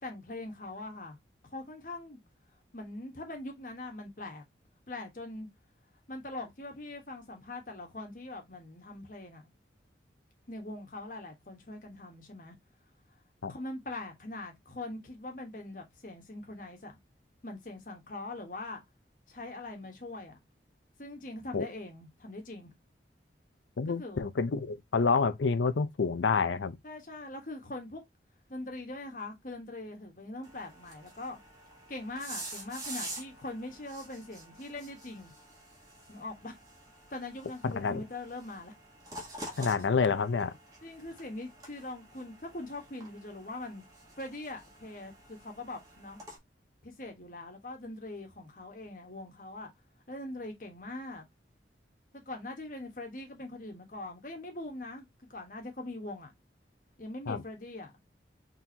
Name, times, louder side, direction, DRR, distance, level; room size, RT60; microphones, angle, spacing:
voice 1, 0.0-1.2 1.5-2.2 2.7-4.4 4.9-5.5 6.1-9.4 10.5-12.6 13.5-17.0 17.4-18.8 19.3-20.4 21.0-22.7 23.9-24.2 26.8-28.0 28.5-31.4 31.9-35.3 36.1-36.6 37.1-38.7 39.5-40.1 40.8-43.8 44.2-46.2 46.8-49.7 50.1-51.2 52.1-56.3 57.0-57.9, left 2 dB, 45° left, 1.3 m, -42 dB
voice 2, 23.8-26.8 37.6-38.0 39.6-40.5 57.3-57.4, left 5 dB, 90° left, 0.6 m, -28 dB
sound 1, 30.4-46.4, right 1 dB, 20° right, 1.5 m, -48 dB
4.3 x 3.8 x 2.8 m
head